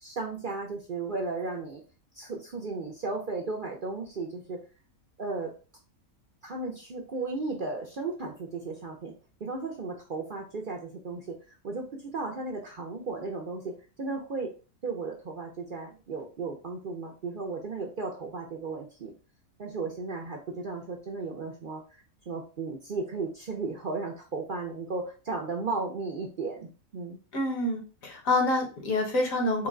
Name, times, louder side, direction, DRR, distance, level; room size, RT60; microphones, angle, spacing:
voice 1, 0.0-1.8 2.1-4.6 5.2-5.5 6.4-9.1 9.4-11.4 11.6-14.5 14.8-19.1 19.6-21.8 22.3-27.2, right 3 dB, 50° right, 0 dB, 0.6 m, -35 dB
voice 2, 27.3-29.7, left 2 dB, 70° left, 2 dB, 1.4 m, -27 dB
3.8 x 2.2 x 3.7 m, 0.33 s
omnidirectional pair, 1.5 m